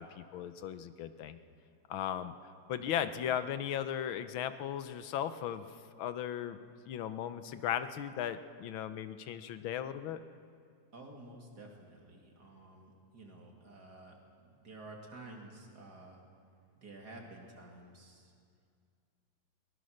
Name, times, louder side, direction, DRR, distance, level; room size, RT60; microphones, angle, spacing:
voice 1, 0.0-1.4 1.9-2.3 2.7-5.7 6.0-6.6 6.9-10.2, left 10 dB, 80° left, 11 dB, 1.6 m, -37 dB
voice 2, 10.9-16.2 16.8-18.3, right 2 dB, 50° right, 0 dB, 3.0 m, -52 dB
21.5 x 19.5 x 6.5 m, 2.3 s
omnidirectional pair, 2.2 m